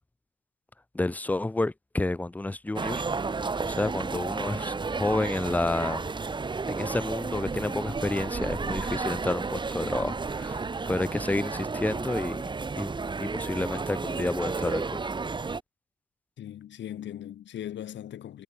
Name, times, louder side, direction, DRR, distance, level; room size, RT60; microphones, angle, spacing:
voice 1, 0.9-3.0 3.6-6.1 6.7-10.6 10.9-12.4 12.8-12.9 13.2-15.0, left 2 dB, 10° left, 0.5 m, -30 dB
sound 1, 2.8-15.6, right 4 dB, 25° right, 1.1 m, -32 dB
voice 2, 16.4-18.4, left 11 dB, 65° left, 1.8 m, -39 dB
cardioid pair, 90°, 20 cm